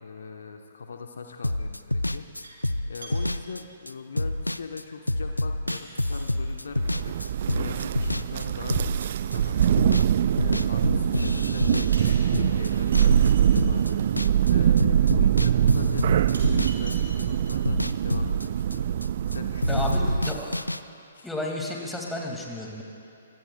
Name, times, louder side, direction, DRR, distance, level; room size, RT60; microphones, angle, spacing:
voice 1, 0.0-2.3 2.9-7.2 7.5-9.9 10.3-14.0 14.4-18.9 19.3-20.4 21.1-21.3, left 5 dB, 60° left, 4 dB, 1.1 m, -41 dB
sound 1, 1.4-10.1 10.4-14.5 14.8-19.4 19.6-20.8, left 1 dB, 85° left, 0.5 m, -28 dB
sound 2, 2.4-2.7 3.0-3.4 4.4-4.5 5.7-6.6 9.1-10.0 11.9-13.7 14.8-14.9 15.5-15.6 16.3-17.6 17.9-18.0, right 2 dB, 65° right, 4.3 m, -45 dB
Thunder, 6.8-20.4, right 10 dB, 45° right, 0.4 m, -23 dB
voice 2, 19.7-20.6 21.2-22.8, left 1 dB, 5° left, -1 dB, 2.4 m, -32 dB
26.0 x 23.0 x 2.4 m, 2.8 s
figure-of-eight pair, 125°, 0 cm